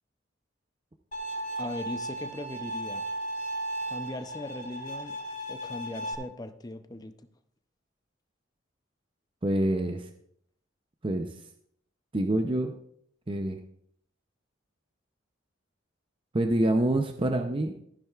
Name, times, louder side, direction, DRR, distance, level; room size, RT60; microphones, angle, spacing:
Bowed string instrument, 1.1-6.1, right 1 dB, 40° left, 1.5 m, -35 dB
voice 1, 1.6-3.0 3.9-5.2 5.5-7.1, left 1 dB, 20° left, 9 dB, 0.6 m, -39 dB
voice 2, 9.4-10.1 11.0-11.3 12.1-12.8 13.3-13.6 16.3-17.8, right 1 dB, 30° right, 5 dB, 0.6 m, -26 dB
14.0 x 10.0 x 2.4 m, 0.68 s
head